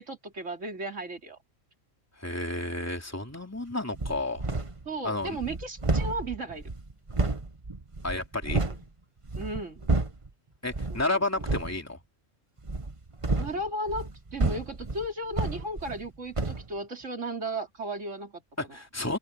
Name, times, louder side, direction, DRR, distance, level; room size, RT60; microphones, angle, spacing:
voice 1, 0.0-1.4 4.8-6.7 8.7-8.8 9.3-9.9 10.9-11.2 13.4-18.4 18.7-18.8, right 1 dB, 70° right, 3.4 m, -35 dB
voice 2, 2.2-4.5 5.0-5.4 8.0-8.6 10.6-12.0 18.6-19.2, left 2 dB, 10° left, 3.2 m, -31 dB
sound 1, 3.9-4.9 5.2-8.8 9.2-10.3 10.7-11.0 11.4-11.8 12.6-16.1 16.3-16.7, right 3 dB, 25° right, 1.4 m, -30 dB
open air
omnidirectional pair, 1.3 m